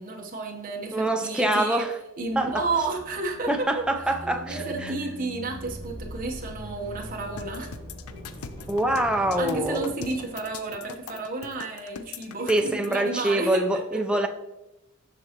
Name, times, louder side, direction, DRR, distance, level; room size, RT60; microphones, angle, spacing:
voice 1, 0.0-3.7 4.5-7.7 8.1-8.2 9.4-13.8, right 3 dB, 40° right, 1 dB, 1.0 m, -32 dB
voice 2, 0.9-1.9 2.4-2.6 3.5-4.9 8.7-9.9 12.5-14.3, right 1 dB, 5° right, 4 dB, 0.5 m, -25 dB
sound 1, 2.2-11.0, equal, 20° left, 2.6 m, -42 dB
sound 2, 7.4-13.0, left 6 dB, 80° left, 0.5 m, -41 dB
7.7 x 6.1 x 2.9 m, 0.96 s
head